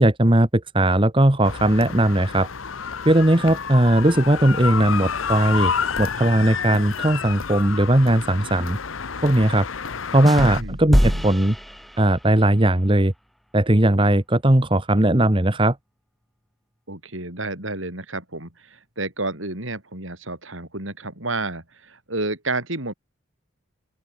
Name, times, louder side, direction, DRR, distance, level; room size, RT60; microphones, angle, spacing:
voice 1, 0.0-2.5 3.0-5.7 6.0-8.8 9.2-9.7 10.1-11.5 12.0-13.1 13.5-15.8, right 1 dB, 25° right, 1.3 m, -18 dB
sound 1, 1.4-10.6, left 6 dB, 80° left, 1.0 m, -29 dB
sound 2, 10.2-12.4, equal, ahead, 2.3 m, -24 dB
voice 2, 10.6-11.3 16.9-22.9, right 2 dB, 75° right, 7.3 m, -31 dB
open air
head